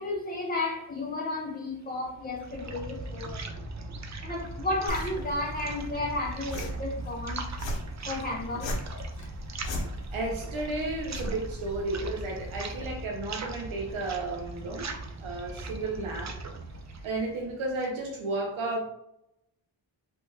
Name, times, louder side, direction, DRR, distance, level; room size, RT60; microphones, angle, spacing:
voice 1, 0.0-3.4 4.2-7.4 8.1-8.7, left 2 dB, 20° left, 0 dB, 0.4 m, -33 dB
sound 1, 2.0-18.0, right 2 dB, 40° right, 0.4 m, -39 dB
sound 2, 4.9-12.9, equal, 70° left, 0.7 m, -39 dB
voice 2, 10.1-14.9 15.2-16.3 17.0-18.8, right 2 dB, 85° right, 0 dB, 0.7 m, -33 dB
2.9 x 2.1 x 3.2 m, 0.77 s
cardioid pair, 60°, 47 cm